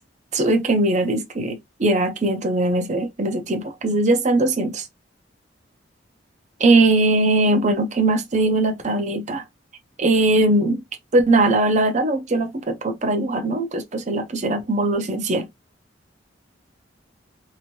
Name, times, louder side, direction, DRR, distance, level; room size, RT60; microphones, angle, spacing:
voice 1, 0.3-4.9 6.6-9.4 10.0-10.8 11.1-15.5, right 2 dB, 40° right, 0.6 m, -20 dB
2.9 x 2.6 x 2.9 m
head